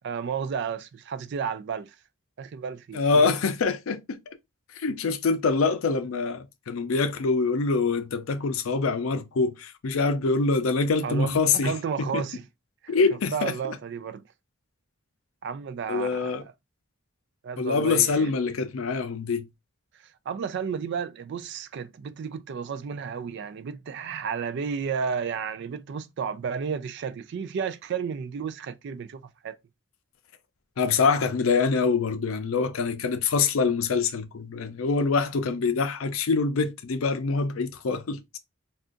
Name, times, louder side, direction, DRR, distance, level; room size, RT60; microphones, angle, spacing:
voice 1, 0.0-2.0 2.4-3.3 11.0-12.4 12.8-12.9 13.3-14.2 15.4-16.4 17.4-18.3 20.3-29.5, right 6 dB, 55° right, 0.3 m, -32 dB
voice 2, 2.9-4.2 4.8-11.7 12.0-12.2 12.9-13.5 15.9-16.4 17.6-19.5 30.8-38.4, left 4 dB, 85° left, 0.5 m, -25 dB
2.5 x 2.3 x 3.6 m
head